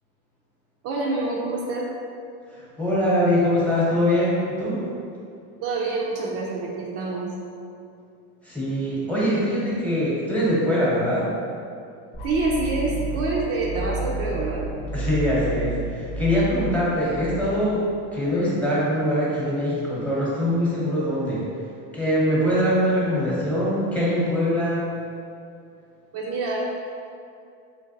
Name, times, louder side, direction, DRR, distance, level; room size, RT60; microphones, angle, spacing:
voice 1, 0.8-1.9 5.6-7.3 12.2-14.7 26.1-26.6, right 2 dB, 50° right, -3 dB, 0.5 m, -26 dB
voice 2, 2.5-4.8 8.4-11.3 14.9-17.8 18.1-21.5 21.9-24.8, equal, 5° left, -8 dB, 1.0 m, -23 dB
sound 1, 12.1-18.1, right 3 dB, 55° left, 0.7 m, -31 dB
3.8 x 3.3 x 2.7 m, 2.4 s
cardioid pair, 140°, 31 cm